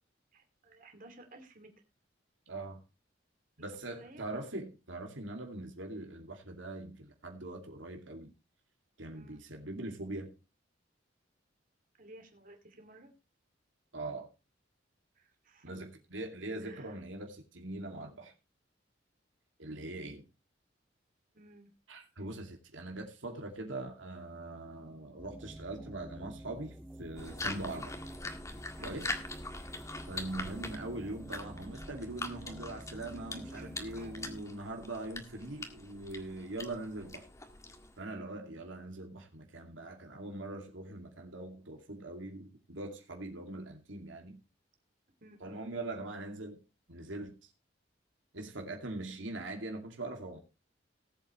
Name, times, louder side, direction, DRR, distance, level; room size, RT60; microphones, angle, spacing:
voice 1, 0.3-1.7 3.6-4.3 9.1-9.5 12.0-13.1 15.1-15.7 16.6-17.0 21.3-21.7 27.7-28.1 28.8-29.0 29.5-29.6 33.1-34.3 38.1-38.6 45.2-45.8, right 1 dB, 45° right, 2.7 m, -55 dB
voice 2, 2.5-2.8 3.6-8.3 9.0-10.3 13.9-14.3 15.6-18.3 19.6-20.2 21.9-28.0 28.8-29.1 30.1-37.3 38.0-44.4 45.4-46.6 46.9-47.5 48.3-50.4, right 2 dB, 85° right, 2.5 m, -42 dB
sound 1, 25.2-34.4, right 1 dB, 5° right, 0.5 m, -49 dB
sound 2, 27.2-38.0, left 2 dB, 15° left, 1.7 m, -43 dB
18.5 x 8.2 x 3.2 m
head